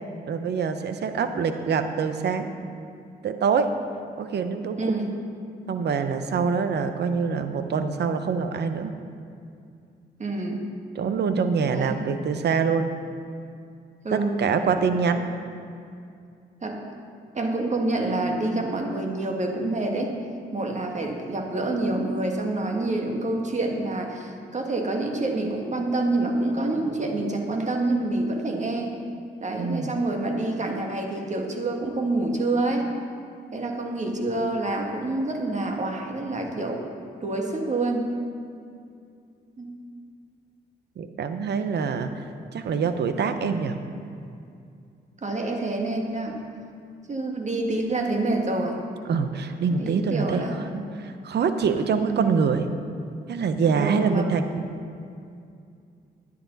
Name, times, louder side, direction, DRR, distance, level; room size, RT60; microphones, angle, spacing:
voice 1, 0.3-2.5 3.2-3.7 4.2-4.9 5.7-8.9 11.0-12.9 14.1-15.3 29.6-30.0 41.0-42.1 42.5-43.8 49.1-50.5 51.0-52.7 53.3-54.5, right 5 dB, 65° right, 9 dB, 0.8 m, -25 dB
voice 2, 4.8-5.1 10.2-10.7 11.7-12.0 14.0-14.4 16.6-16.8 17.3-20.1 20.5-28.9 29.4-32.9 33.5-36.8 37.2-38.1 39.6-39.7 45.2-46.4 47.1-48.8 49.8-50.9 52.0-52.3 53.8-54.3, right 2 dB, 40° right, 2 dB, 1.7 m, -27 dB
10.0 x 9.6 x 4.0 m, 2.4 s
supercardioid pair, 55°, 19 cm